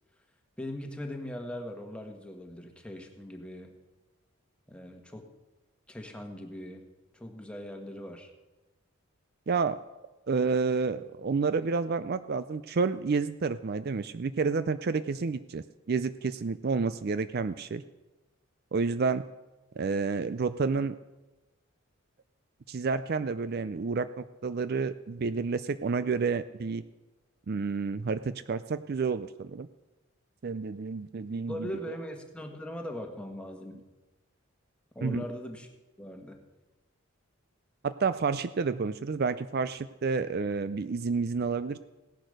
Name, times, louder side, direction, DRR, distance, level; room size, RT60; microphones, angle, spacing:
voice 1, 0.6-3.7 4.7-5.3 5.9-6.8 7.1-8.3 31.5-33.8 34.9-35.7 36.0-36.4, left 1 dB, 5° left, 3 dB, 1.5 m, -40 dB
voice 2, 9.5-9.8 10.3-17.8 18.7-19.2 19.8-21.0 22.7-26.8 27.5-29.7 30.4-31.7 35.0-35.3 37.8-41.8, right 4 dB, 45° right, 13 dB, 0.4 m, -30 dB
17.0 x 10.5 x 6.6 m, 1.1 s
head